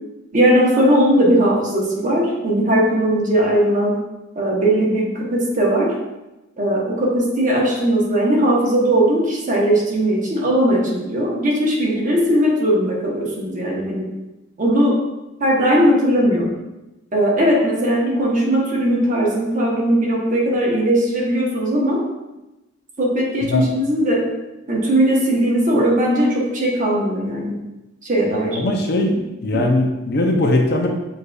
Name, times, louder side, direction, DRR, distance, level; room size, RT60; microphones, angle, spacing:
voice 1, 0.3-3.9 4.4-5.9 6.6-14.1 14.6-14.9 15.4-16.5 17.1-22.0 23.0-24.2 24.7-27.5 28.0-28.6 29.5-29.6, right 1 dB, 40° right, -3 dB, 1.0 m, -18 dB
voice 2, 28.5-29.1 29.4-30.9, left 2 dB, 55° left, 2 dB, 0.5 m, -19 dB
6.4 x 2.7 x 2.3 m, 1.0 s
head